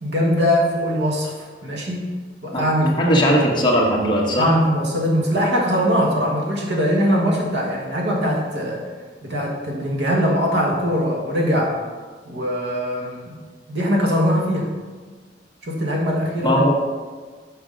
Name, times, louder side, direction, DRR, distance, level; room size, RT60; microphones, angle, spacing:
voice 1, 0.0-2.1 2.4-3.3 4.4-8.8 9.2-11.8 12.3-13.3 13.7-14.7 15.6-16.6, equal, 80° right, -1 dB, 1.5 m, -21 dB
voice 2, 3.0-4.5 16.4-16.7, equal, 25° left, -2 dB, 1.2 m, -18 dB
6.1 x 5.0 x 5.1 m, 1.4 s
head